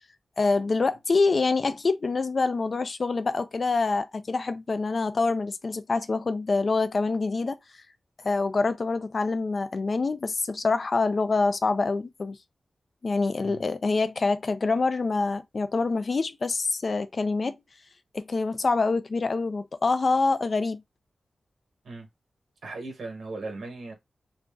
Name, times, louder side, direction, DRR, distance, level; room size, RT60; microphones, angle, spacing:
voice 1, 0.4-7.6 8.2-12.4 13.0-17.6 18.1-20.8, left 3 dB, 40° left, 0.3 m, -26 dB
voice 2, 22.6-23.9, right 3 dB, 80° right, 1.0 m, -37 dB
2.5 x 2.0 x 3.4 m
wide cardioid pair, 165°, 0 cm